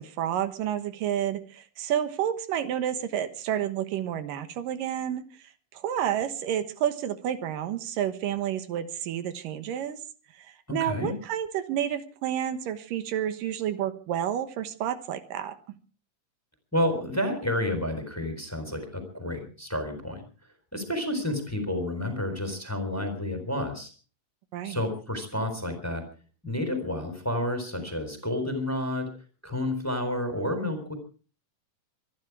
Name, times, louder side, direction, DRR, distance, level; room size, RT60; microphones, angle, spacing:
voice 1, 0.0-5.3 5.7-10.0 10.3-15.6 24.5-24.8, right 10 dB, 80° right, 10 dB, 2.9 m, -30 dB
voice 2, 10.7-11.1 16.7-20.2 20.7-23.9 24.6-26.0 26.4-29.1 29.4-30.9, left 1 dB, 5° left, 6 dB, 3.4 m, -30 dB
25.0 x 11.0 x 4.8 m, 0.39 s
omnidirectional pair, 3.8 m